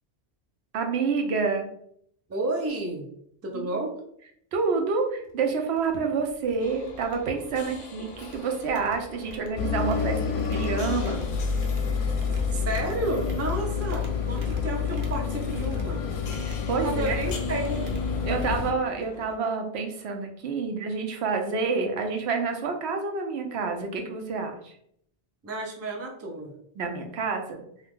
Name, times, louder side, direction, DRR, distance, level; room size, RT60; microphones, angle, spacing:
voice 1, 0.7-1.7 3.5-3.8 4.5-11.2 16.5-17.2 18.3-24.7 26.8-27.6, right 4 dB, 90° right, 4 dB, 0.9 m, -28 dB
voice 2, 2.3-3.0 3.4-3.9 12.5-16.0 16.8-17.8 25.4-26.5, right 2 dB, 25° right, 1 dB, 0.4 m, -31 dB
sound 1, 5.2-5.3 5.7-6.0 6.2-6.6 6.9-7.8 8.1-19.3, equal, 60° right, 0.7 m, -43 dB
sound 2, 6.6-19.4, left 2 dB, 55° left, 0.5 m, -45 dB
sound 3, 9.6-18.7, left 6 dB, 85° left, 0.8 m, -29 dB
2.7 x 2.3 x 3.5 m, 0.68 s
omnidirectional pair, 1.1 m